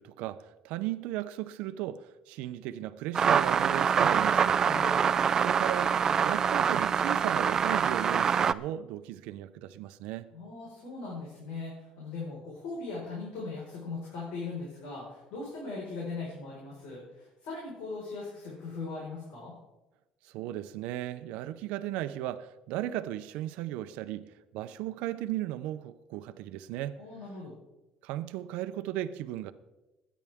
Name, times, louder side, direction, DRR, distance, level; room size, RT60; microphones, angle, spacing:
voice 1, 0.0-4.6 5.4-10.3 20.2-24.2 24.5-27.0 28.0-29.5, right 13 dB, 90° right, 0.6 m, -36 dB
sound 1, 3.1-8.5, right 7 dB, 25° right, 0.3 m, -25 dB
voice 2, 4.6-5.1 10.3-19.5 27.0-27.5, left 3 dB, 80° left, 4.7 m, -39 dB
21.5 x 10.0 x 3.5 m
cardioid pair, 170°, 2 cm